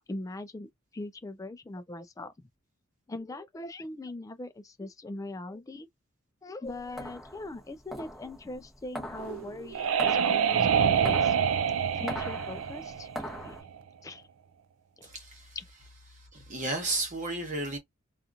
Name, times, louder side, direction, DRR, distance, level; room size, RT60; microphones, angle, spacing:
voice 1, 0.1-2.3 3.1-5.9 6.4-11.3 12.0-13.1 13.4-13.6 14.0-14.3 15.0-15.1 15.6-15.7, left 2 dB, 15° left, 0.3 m, -40 dB
sound 1, 6.7-13.6, equal, ahead, 0.8 m, -42 dB
sound 2, 9.2-13.8, right 7 dB, 80° right, 0.4 m, -26 dB
voice 2, 15.0-15.5 16.3-17.8, right 2 dB, 40° right, 1.0 m, -33 dB
2.8 x 2.4 x 2.4 m
head